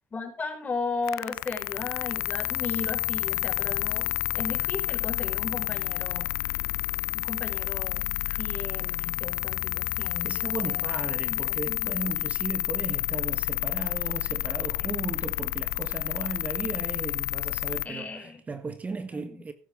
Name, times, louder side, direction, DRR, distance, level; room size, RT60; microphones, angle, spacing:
voice 1, 0.1-6.7 7.1-10.8 11.3-11.9 14.8-14.9 17.8-18.4 19.1-19.4, left 4 dB, 30° left, 5.2 m, -36 dB
sound 1, 1.0-17.9, left 20 dB, 85° left, 0.5 m, -30 dB
voice 2, 10.2-19.5, right 4 dB, 25° right, 1.5 m, -36 dB
15.0 x 11.0 x 3.7 m
supercardioid pair, 90°, 6 cm